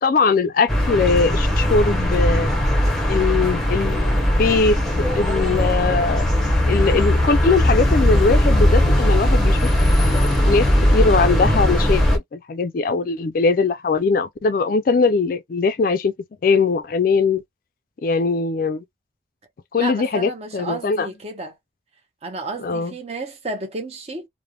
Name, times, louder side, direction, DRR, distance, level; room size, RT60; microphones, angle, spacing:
voice 1, 0.0-2.5 3.1-4.8 5.1-6.3 6.7-9.7 10.4-16.1 16.4-17.4 18.0-18.8 19.7-21.1 22.6-22.9, left 4 dB, 45° left, 0.3 m, -20 dB
sound 1, 0.7-12.2, equal, ahead, 0.8 m, -18 dB
voice 2, 19.8-21.5 22.2-24.3, right 2 dB, 35° right, 0.7 m, -32 dB
3.1 x 2.1 x 2.2 m
head